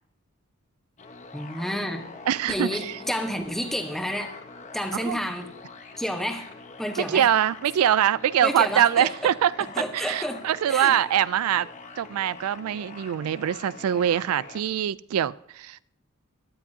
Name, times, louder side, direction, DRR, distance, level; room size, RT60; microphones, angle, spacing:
sound 1, 1.0-14.6, left 4 dB, 35° left, 0.9 m, -44 dB
voice 1, 1.3-2.1 2.5-4.4 4.7-5.5 6.0-6.5 6.8-7.3 8.4-9.3 9.7-10.4 10.7-11.0, equal, ahead, 4 dB, 1.1 m, -30 dB
voice 2, 2.3-2.9 5.0-5.2 7.1-9.5 9.9-11.7 12.0-15.8, right 10 dB, 90° right, 20 dB, 0.3 m, -23 dB
17.0 x 12.5 x 2.8 m, 0.74 s
head